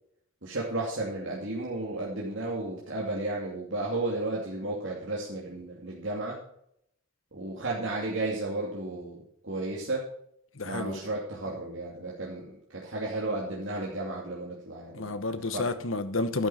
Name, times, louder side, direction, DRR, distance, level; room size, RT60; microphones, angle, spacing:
voice 1, 0.4-6.4 7.3-10.0 10.6-15.1 15.5-15.7, right 2 dB, 70° right, 2.6 m, -33 dB
voice 2, 10.5-11.0 14.9-16.5, left 2 dB, 85° left, 1.2 m, -30 dB
11.5 x 9.6 x 4.2 m
head